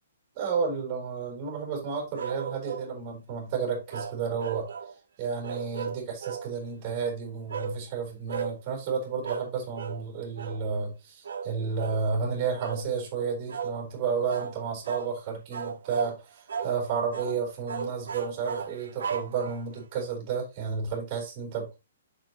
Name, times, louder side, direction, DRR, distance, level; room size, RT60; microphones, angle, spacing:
voice 1, 0.4-4.7 5.2-21.7, right 5 dB, 20° right, 3.8 m, -31 dB
sound 1, 2.1-2.9 3.9-4.9 5.4-6.5 7.5-7.8 8.3-8.5 9.2-9.5 9.8-10.0 10.4-10.6 11.2-11.5 11.8-12.0 12.6-12.9 13.5-13.7 14.3-14.5 14.8-15.1 15.5-16.2 16.5-16.7 17.1-17.4 17.7-19.8, right 6 dB, 80° right, 2.0 m, -35 dB
7.6 x 6.8 x 3.0 m
hypercardioid pair, 180°, 0 cm